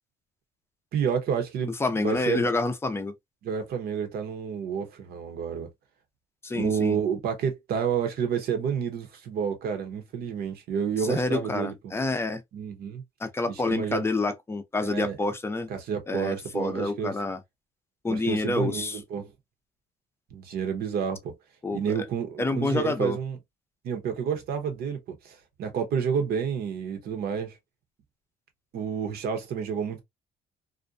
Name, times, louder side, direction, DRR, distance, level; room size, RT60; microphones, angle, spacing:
voice 1, 0.9-2.5 3.4-5.7 6.5-11.7 12.5-13.0 13.5-14.0 14.8-15.2 15.7-17.1 18.1-19.3 20.3-21.3 21.7-23.4 23.8-27.6 28.7-30.0, right 7 dB, 65° right, 0.9 m, -30 dB
voice 2, 1.7-3.1 6.4-7.0 11.1-12.4 13.2-15.7 16.1-17.4 18.0-19.0 21.6-22.1 22.4-23.2, left 3 dB, 15° left, 0.5 m, -28 dB
2.5 x 2.2 x 2.5 m
cardioid pair, 110°, 17 cm